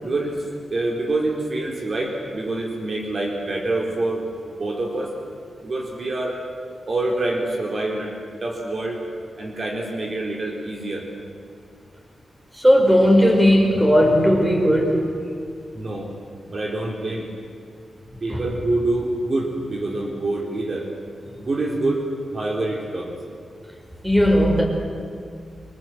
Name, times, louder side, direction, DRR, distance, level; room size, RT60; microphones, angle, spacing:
voice 1, 0.0-4.3 4.6-5.2 5.6-6.4 6.9-8.1 8.4-9.0 9.4-11.1 15.7-16.1 16.5-17.3 18.2-20.9 21.4-23.2, right 2 dB, 45° right, 0 dB, 3.8 m, -26 dB
voice 2, 12.5-15.1 18.3-18.4 24.0-24.6, equal, 10° right, 2 dB, 5.3 m, -16 dB
28.0 x 24.5 x 7.9 m, 2.3 s
wide cardioid pair, 105°, 0 cm